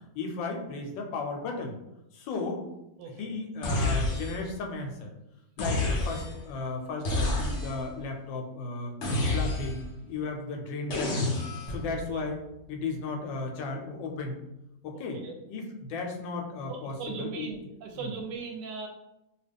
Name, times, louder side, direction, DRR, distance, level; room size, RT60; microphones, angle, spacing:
voice 1, 0.1-1.7 2.1-2.6 3.0-5.1 5.6-8.9 9.3-11.4 11.7-12.4 12.7-14.4 14.8-15.2 15.5-17.5 18.0-18.1, left 3 dB, 85° left, 2 dB, 1.3 m, -35 dB
voice 2, 3.0-3.3 11.9-12.2 14.9-15.4 16.7-18.9, right 5 dB, 75° right, 3 dB, 1.2 m, -39 dB
sound 1, 3.6-4.6 5.6-6.5 7.0-7.9 9.0-9.9 10.9-11.8, left 2 dB, 55° left, 0.8 m, -29 dB
sound 2, 11.7-14.5, equal, 20° left, 1.0 m, -45 dB
2.9 x 2.7 x 3.4 m, 0.89 s
omnidirectional pair, 2.0 m